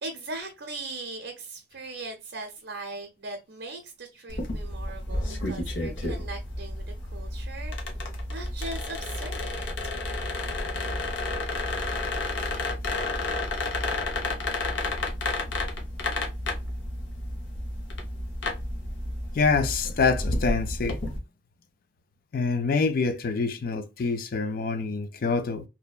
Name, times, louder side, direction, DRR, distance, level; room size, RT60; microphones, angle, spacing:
voice 1, 0.0-7.8 8.3-9.7, right 2 dB, 70° right, 0.6 m, -39 dB
Squeaky Chair medium speed, 4.3-21.2, left 2 dB, 80° left, 0.7 m, -31 dB
voice 2, 19.3-21.0 22.3-25.6, left 4 dB, 50° left, 0.4 m, -26 dB
2.7 x 2.1 x 2.3 m
head